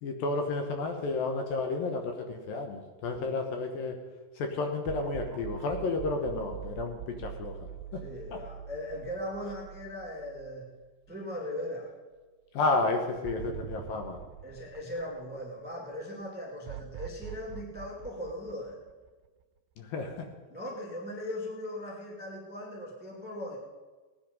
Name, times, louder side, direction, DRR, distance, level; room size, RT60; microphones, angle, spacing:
voice 1, 0.0-4.0 4.4-7.5 7.9-8.0 12.5-14.2 19.8-20.3, left 3 dB, 70° left, 4 dB, 2.5 m, -31 dB
sound 1, 4.8-11.2 11.6-11.7 13.2-15.7 16.7-19.4, right 10 dB, 85° right, 2.5 m, -44 dB
voice 2, 8.0-10.7 11.1-11.9 14.4-18.8 20.5-23.6, left 1 dB, 10° right, -2 dB, 0.5 m, -39 dB
18.0 x 10.0 x 5.3 m, 1.4 s
omnidirectional pair, 5.0 m